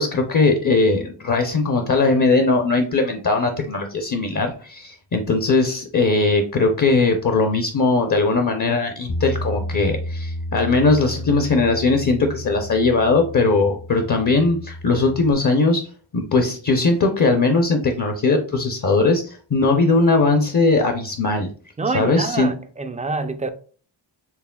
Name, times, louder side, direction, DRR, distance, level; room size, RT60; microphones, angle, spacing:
voice 1, 0.0-15.8 16.1-21.5 21.9-22.5, left 3 dB, 40° left, 0.6 m, -19 dB
Bass guitar, 9.1-15.3, left 1 dB, 65° left, 1.0 m, -31 dB
voice 2, 21.8-23.5, right 3 dB, 20° right, 0.3 m, -26 dB
4.7 x 3.1 x 2.2 m
wide cardioid pair, 80°, 46 cm